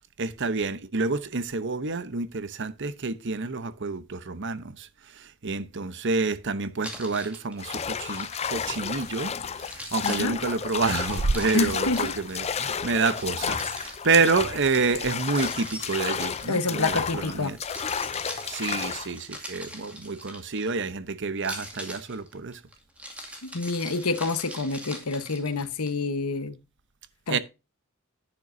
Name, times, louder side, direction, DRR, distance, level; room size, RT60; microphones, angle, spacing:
voice 1, 0.2-4.9 5.1-9.3 9.6-17.6 18.5-22.6 27.3-27.4, right 4 dB, 55° right, 0.8 m, -28 dB
Keys jangling, 6.8-9.3 9.6-12.4 13.1-14.3 15.2-17.1 17.5-20.9 21.4-25.9, equal, 5° right, 2.2 m, -42 dB
sound 1, 7.6-19.2, left 7 dB, 30° left, 0.5 m, -32 dB
voice 2, 10.0-10.4 11.5-12.1 16.5-17.6 23.4-26.6 27.3-27.4, left 3 dB, 80° left, 1.1 m, -28 dB
10.5 x 9.0 x 2.7 m
head